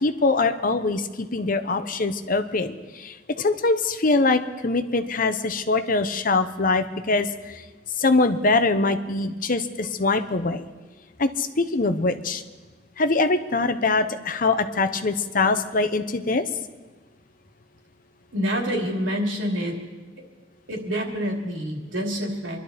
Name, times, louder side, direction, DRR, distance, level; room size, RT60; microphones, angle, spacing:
voice 1, 0.0-2.7 3.0-7.3 8.0-10.7 11.2-12.4 13.0-16.4, left 3 dB, 45° left, 10 dB, 0.9 m, -23 dB
voice 2, 18.3-19.8 20.2-20.3 20.7-22.6, equal, 90° right, 1 dB, 3.0 m, -27 dB
26.0 x 12.0 x 4.2 m, 1.3 s
head